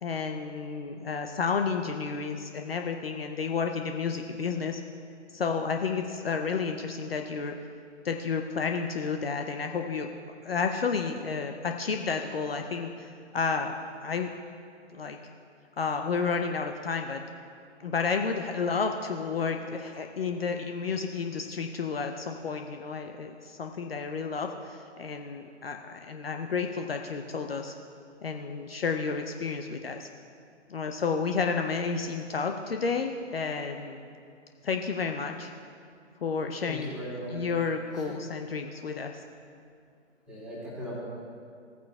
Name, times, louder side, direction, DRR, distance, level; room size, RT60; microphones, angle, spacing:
voice 1, 0.0-4.8 5.3-7.5 8.0-10.1 10.4-13.7 14.0-14.3 14.9-15.2 15.8-17.2 17.8-27.7 28.2-30.1 30.7-34.1 34.6-35.5 36.2-37.0 37.3-39.2, left 5 dB, 55° left, 4 dB, 0.7 m, -31 dB
voice 2, 36.7-37.4 40.3-41.0, equal, ahead, -8 dB, 2.3 m, -38 dB
17.0 x 9.2 x 2.3 m, 2.4 s
figure-of-eight pair, 140°, 36 cm